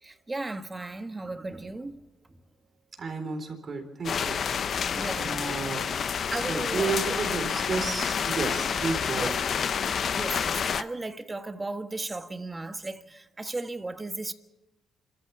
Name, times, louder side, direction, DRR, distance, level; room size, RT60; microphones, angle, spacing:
voice 1, 0.0-2.0 4.9-5.4 6.3-7.2 9.1-9.3 10.1-14.3, right 2 dB, 20° right, 1.5 m, -35 dB
voice 2, 3.0-4.4 5.2-5.9 6.3-9.4, right 4 dB, 45° right, 4.0 m, -32 dB
sound 1, 4.0-10.8, left 7 dB, 55° left, 0.7 m, -29 dB
27.0 x 14.0 x 7.2 m
cardioid pair, 90°, 0 cm